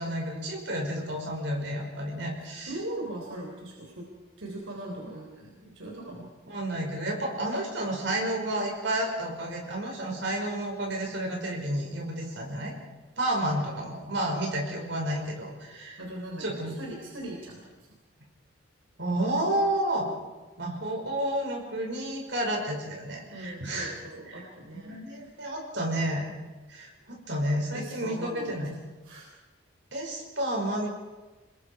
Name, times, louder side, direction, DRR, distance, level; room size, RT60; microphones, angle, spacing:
voice 1, 0.0-2.7 6.5-12.7 13.2-16.0 16.4-16.7 19.0-20.1 20.6-23.9 24.3-24.4 24.7-26.2 26.7-28.7 29.9-30.9, right 1 dB, 65° right, 0 dB, 5.6 m, -31 dB
voice 2, 2.6-4.0 4.4-6.3 13.4-13.6 16.0-17.9 23.3-25.2 27.7-29.3, right 1 dB, 85° right, -1 dB, 3.8 m, -40 dB
27.0 x 21.5 x 4.8 m, 1.2 s
head